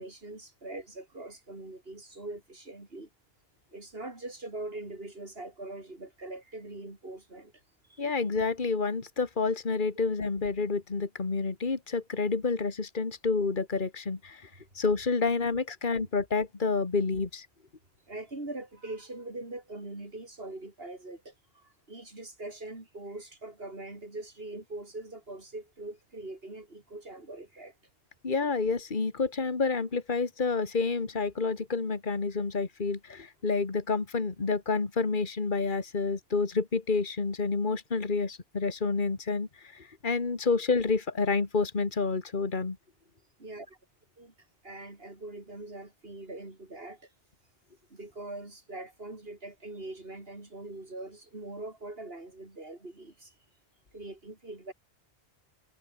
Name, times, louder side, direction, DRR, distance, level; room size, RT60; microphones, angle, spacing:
voice 1, 0.0-3.1 3.7-7.5 7.9-8.0 18.1-27.7 43.4-43.8 44.2-44.3 44.6-47.1 47.9-53.3 53.9-54.7, right 2 dB, 60° right, 4.6 m, -42 dB
voice 2, 8.0-14.5 14.7-17.5 28.2-42.8, left 4 dB, 50° left, 2.1 m, -29 dB
omnidirectional pair, 1.1 m